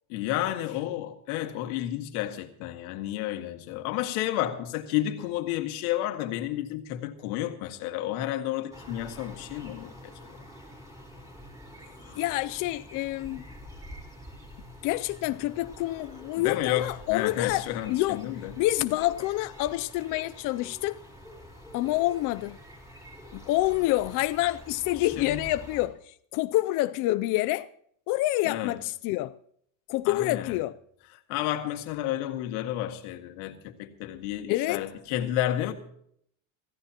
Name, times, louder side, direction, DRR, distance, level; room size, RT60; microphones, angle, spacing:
voice 1, 0.1-10.4 16.4-18.5 24.9-25.4 28.4-28.8 30.1-30.6 31.3-35.7, left 13 dB, 80° left, 2.0 m, -31 dB
sound 1, 8.7-25.9, equal, 5° right, 4.0 m, -47 dB
voice 2, 12.2-13.4 14.8-18.2 18.6-21.0 21.7-22.6 23.3-27.7 28.1-29.3 29.9-30.7 34.5-34.8, left 17 dB, 50° left, 0.5 m, -27 dB
26.0 x 14.5 x 2.9 m
cardioid pair, 150°, 43 cm